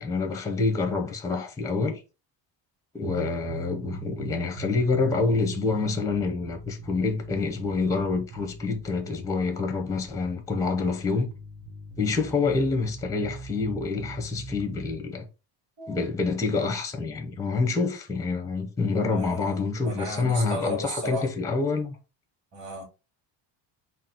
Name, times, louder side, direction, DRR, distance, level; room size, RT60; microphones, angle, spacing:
voice 1, 0.0-2.0 2.9-11.3 12.0-15.3 15.9-22.0, left 4 dB, 5° left, 0.5 m, -27 dB
sound 1, 3.0-15.0, right 3 dB, 75° right, 1.3 m, -41 dB
voice 2, 18.9-21.3 22.5-22.8, equal, 35° right, 2.3 m, -34 dB
4.0 x 2.0 x 4.2 m
cardioid pair, 135°, 47 cm